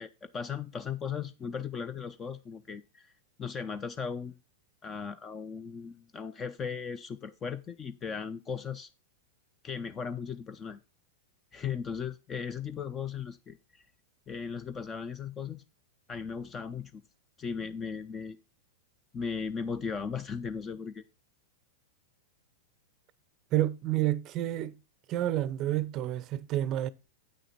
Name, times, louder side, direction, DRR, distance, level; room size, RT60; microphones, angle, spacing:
voice 1, 0.0-3.1 3.4-4.4 4.8-8.9 9.6-10.8 11.5-13.8 14.3-15.6 16.1-17.0 17.4-18.4 19.1-21.0, left 6 dB, 20° left, 0.6 m, -37 dB
voice 2, 23.5-24.7 25.1-26.9, right 13 dB, 35° right, 0.6 m, -29 dB
8.6 x 6.4 x 4.3 m
figure-of-eight pair, 95°, 0 cm